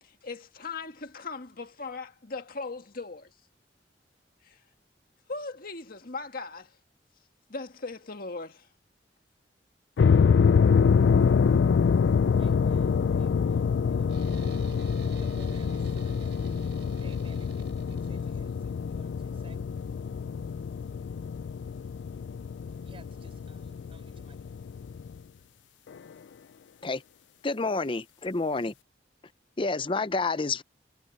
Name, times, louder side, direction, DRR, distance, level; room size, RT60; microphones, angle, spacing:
voice 1, 0.0-3.3 4.4-4.6 5.3-6.8 7.5-8.7, left 3 dB, 55° left, 1.8 m, -39 dB
sound 1, 10.0-25.2, left 6 dB, 80° left, 0.4 m, -25 dB
voice 2, 11.6-14.6 15.2-16.4 17.0-19.6 22.8-24.4 28.2-28.8, right 2 dB, 30° right, 6.4 m, -56 dB
sound 2, 14.1-18.6, right 2 dB, 75° right, 4.4 m, -50 dB
voice 3, 27.4-28.7 29.6-30.6, left 3 dB, 30° left, 0.7 m, -29 dB
head